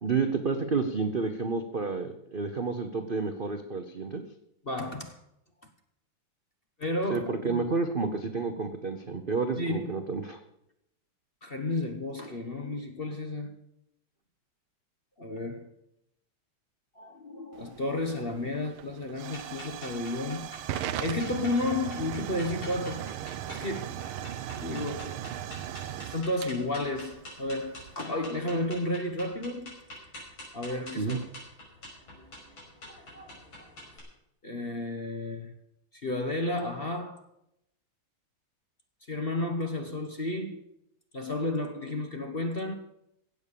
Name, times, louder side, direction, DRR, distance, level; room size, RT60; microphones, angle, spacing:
voice 1, 0.0-4.2 7.1-10.4 31.0-31.2, right 4 dB, 50° right, 0.6 m, -30 dB
voice 2, 4.6-5.2 6.8-7.6 9.6-10.0 11.4-13.5 15.2-15.7 16.9-20.5 20.9-23.1 23.5-25.3 26.0-29.8 30.5-31.2 34.4-35.5 35.9-37.2 39.1-40.6 41.1-42.7, left 2 dB, 35° left, 1.0 m, -32 dB
Hiss / Fire / Tick, 17.5-27.9, right 11 dB, 80° right, 1.5 m, -38 dB
sound 1, 19.3-34.0, left 1 dB, 65° left, 6.2 m, -47 dB
16.0 x 8.3 x 6.9 m
omnidirectional pair, 2.4 m